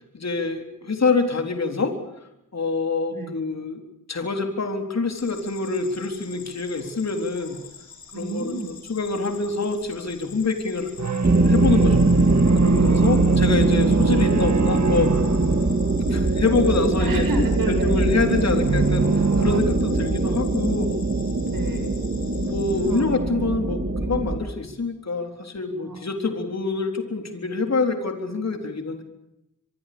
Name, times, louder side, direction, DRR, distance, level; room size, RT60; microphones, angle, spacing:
voice 1, 0.1-1.9 2.5-3.8 4.1-7.6 8.1-10.9 11.5-12.1 12.6-15.2 16.1-17.2 17.7-20.9 22.4-29.0, left 4 dB, 50° left, 5 dB, 4.0 m, -26 dB
sound 1, 5.1-23.0, left 6 dB, 80° left, 4.3 m, -45 dB
voice 2, 8.1-8.8 17.0-18.0 21.5-21.9 22.7-23.0 25.8-26.0, right 2 dB, 75° right, 5 dB, 7.9 m, -30 dB
sound 2, 11.0-16.4 18.6-19.6, right 5 dB, 50° right, 1.7 m, -25 dB
sound 3, 11.2-24.4, right 2 dB, 35° right, 2.4 m, -21 dB
25.0 x 23.0 x 7.0 m, 0.86 s
wide cardioid pair, 90°, 35 cm